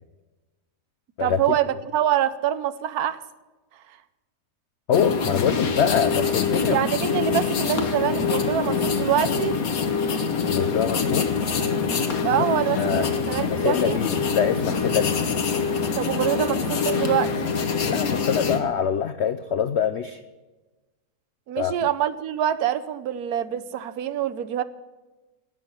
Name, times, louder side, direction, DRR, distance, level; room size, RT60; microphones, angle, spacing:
voice 1, 1.2-3.2 6.7-9.6 12.2-14.0 16.0-17.3 21.5-24.6, right 11 dB, 65° right, 14 dB, 1.2 m, -25 dB
voice 2, 4.9-6.8 10.5-11.3 12.3-12.5 12.8-13.1 13.5-15.3 17.9-20.2 21.6-21.7, left 8 dB, 70° left, 12 dB, 0.6 m, -24 dB
sound 1, 4.9-18.6, left 5 dB, 55° left, 1.7 m, -25 dB
18.5 x 6.2 x 9.8 m, 1.2 s
omnidirectional pair, 1.8 m